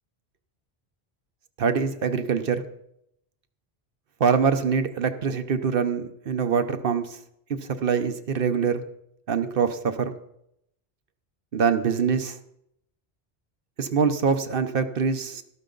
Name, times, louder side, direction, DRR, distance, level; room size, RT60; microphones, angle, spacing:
voice 1, 1.6-2.6 4.2-7.1 7.5-8.8 9.3-10.2 11.5-12.4 13.8-15.4, right 6 dB, 60° right, 9 dB, 1.0 m, -24 dB
12.5 x 12.5 x 3.9 m, 0.77 s
omnidirectional pair, 1.1 m